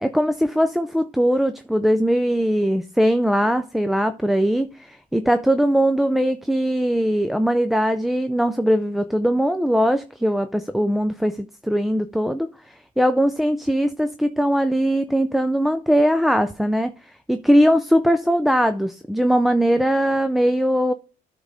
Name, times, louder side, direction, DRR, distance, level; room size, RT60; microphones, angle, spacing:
voice 1, 0.0-20.9, equal, ahead, 0.4 m, -20 dB
9.6 x 3.7 x 5.4 m
cardioid pair, 110°, 17 cm